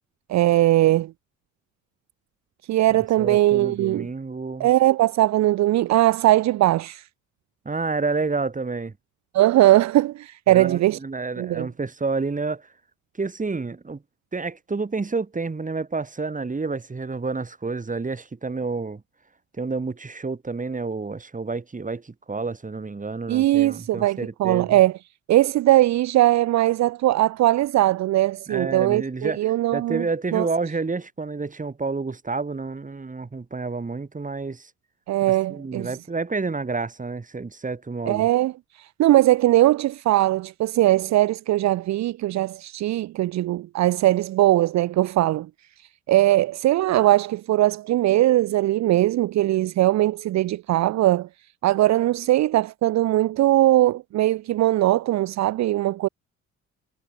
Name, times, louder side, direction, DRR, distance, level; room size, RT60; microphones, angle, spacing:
voice 1, 0.3-1.1 2.7-4.1 4.6-7.1 9.3-11.0 11.4-11.7 23.3-24.9 25.3-30.0 30.3-30.5 35.1-36.0 38.1-38.5 38.8-45.5 46.1-51.3 51.6-56.1, right 15 dB, 65° right, 0.6 m, -20 dB
voice 2, 2.9-4.7 7.7-8.9 10.5-12.7 13.2-14.0 14.3-19.0 19.6-24.8 28.5-34.7 35.5-38.3, right 4 dB, 25° right, 7.3 m, -29 dB
cardioid pair, 90°, 30 cm